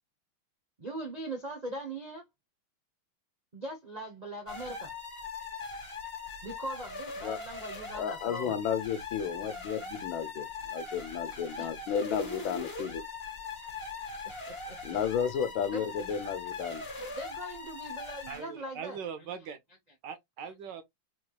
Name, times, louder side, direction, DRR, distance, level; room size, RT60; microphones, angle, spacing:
voice 1, 0.8-2.2 3.5-4.9 6.4-8.6 11.6-11.7 14.5-14.8 15.7-15.8 17.0-19.0, right 1 dB, 50° right, 0.4 m, -40 dB
sound 1, 4.5-18.5, left 4 dB, 15° left, 1.4 m, -41 dB
voice 2, 7.9-13.0 14.8-16.8, left 7 dB, 75° left, 1.4 m, -33 dB
voice 3, 18.3-19.6 20.0-20.8, right 7 dB, 70° right, 1.2 m, -41 dB
4.2 x 3.1 x 2.3 m
omnidirectional pair, 2.3 m